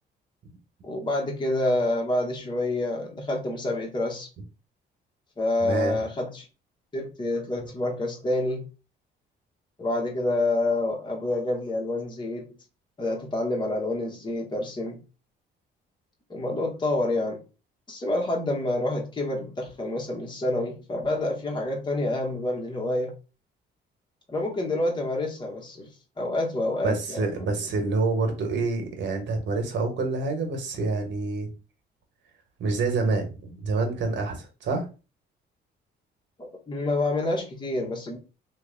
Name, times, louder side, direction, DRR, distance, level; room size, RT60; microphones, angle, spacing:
voice 1, 0.8-4.3 5.4-6.4 6.9-8.6 9.8-12.6 13.0-15.0 16.3-17.4 17.9-23.1 24.3-25.9 26.2-27.3 36.4-38.2, left 2 dB, 25° left, 1.1 m, -28 dB
voice 2, 5.6-5.9 26.8-31.5 32.6-34.8, right 3 dB, 65° right, 1.3 m, -27 dB
3.1 x 2.5 x 3.7 m
cardioid pair, 90°, 20 cm